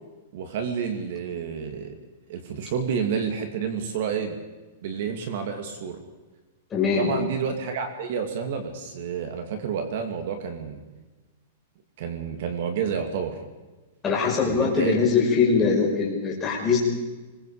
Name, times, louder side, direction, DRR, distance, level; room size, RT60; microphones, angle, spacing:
voice 1, 0.3-2.0 2.3-4.4 4.8-6.0 7.0-10.8 12.0-13.3 14.4-14.9, right 6 dB, 50° right, 6 dB, 2.7 m, -29 dB
voice 2, 6.7-7.1 14.0-16.8, left 5 dB, 15° left, -3 dB, 5.5 m, -22 dB
26.0 x 22.0 x 5.1 m, 1.2 s
supercardioid pair, 175°, 0 cm